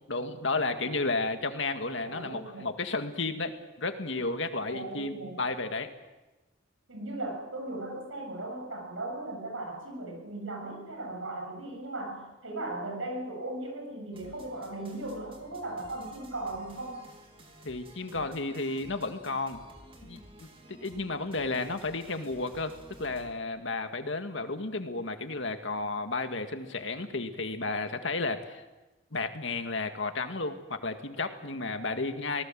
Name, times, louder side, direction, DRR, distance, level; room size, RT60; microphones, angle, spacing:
voice 1, 0.1-5.9 17.7-19.6 20.0-22.7 23.0-28.6 29.1-32.4, left 3 dB, 65° left, 7 dB, 2.0 m, -33 dB
voice 2, 2.0-2.7 4.7-5.4 6.9-17.1, right 2 dB, 80° right, 3 dB, 7.6 m, -37 dB
sound 1, 14.1-23.3, right 1 dB, 25° right, 3.1 m, -53 dB
26.0 x 19.5 x 7.7 m, 1.1 s
head